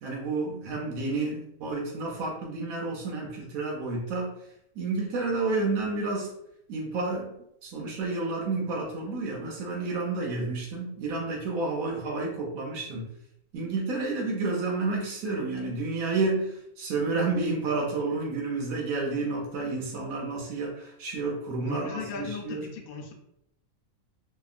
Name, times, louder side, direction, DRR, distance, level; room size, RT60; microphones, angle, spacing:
voice 1, 0.0-4.3 4.8-6.3 6.7-7.3 7.6-13.0 13.5-22.6, right 3 dB, 85° right, -3 dB, 1.1 m, -30 dB
voice 2, 21.6-23.1, left 5 dB, 85° left, 3 dB, 1.0 m, -37 dB
2.8 x 2.3 x 2.4 m, 0.78 s
omnidirectional pair, 1.5 m